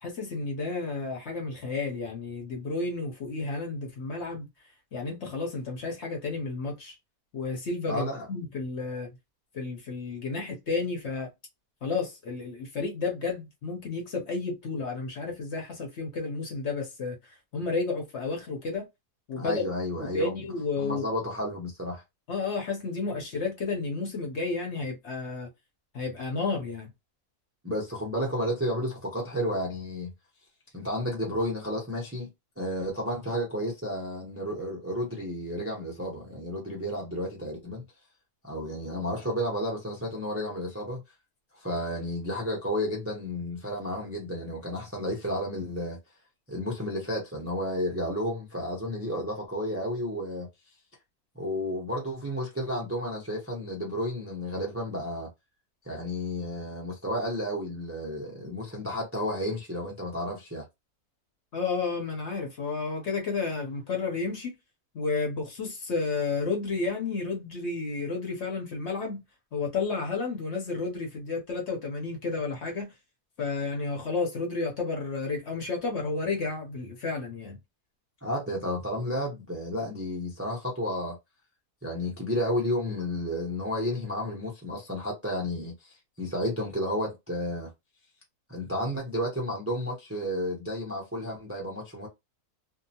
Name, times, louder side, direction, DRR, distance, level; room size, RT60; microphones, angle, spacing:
voice 1, 0.0-4.5 4.9-7.0 7.3-9.1 9.5-11.3 11.8-17.2 17.5-18.9 19.3-19.6 20.0-21.0 22.3-25.5 25.9-26.9 61.5-64.5 64.9-69.2 69.5-72.9 73.4-77.6, left 4 dB, 55° left, 0.9 m, -31 dB
voice 2, 7.9-8.3 19.4-20.4 20.8-22.0 27.6-30.1 30.7-32.3 32.6-37.8 38.4-41.0 41.5-46.0 46.5-50.5 51.3-55.3 55.8-60.6 78.2-81.2 81.8-87.7 88.5-92.1, equal, 20° right, 0.4 m, -32 dB
2.7 x 2.0 x 2.7 m
omnidirectional pair, 1.6 m